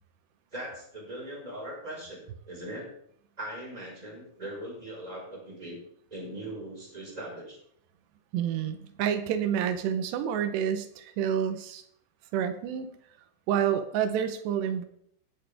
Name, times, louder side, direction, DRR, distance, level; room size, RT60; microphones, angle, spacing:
voice 1, 0.5-2.2 2.5-2.8 3.4-5.8 6.1-7.6, right 1 dB, 10° right, -3 dB, 4.9 m, -40 dB
voice 2, 8.3-11.8 12.3-12.9 13.5-14.8, right 9 dB, 85° right, 9 dB, 3.1 m, -28 dB
18.0 x 9.0 x 3.5 m, 0.67 s
omnidirectional pair, 4.8 m